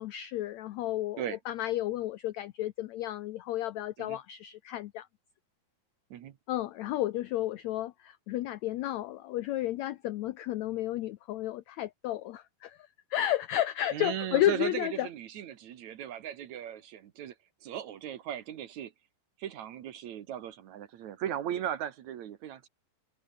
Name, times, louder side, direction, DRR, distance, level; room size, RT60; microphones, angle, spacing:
voice 1, 0.0-5.1 6.5-15.1, left 14 dB, 90° left, 1.5 m, -32 dB
voice 2, 13.9-17.3 17.6-18.9 19.4-22.7, right 10 dB, 65° right, 2.3 m, -37 dB
omnidirectional pair, 4.1 m